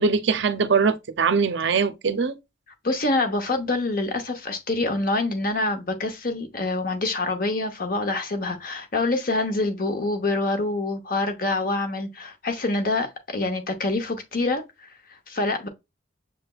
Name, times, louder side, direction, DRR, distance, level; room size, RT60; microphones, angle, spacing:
voice 1, 0.0-2.4, right 5 dB, 65° right, 0.5 m, -22 dB
voice 2, 2.8-15.7, left 2 dB, 45° left, 0.8 m, -26 dB
6.5 x 3.2 x 2.3 m
head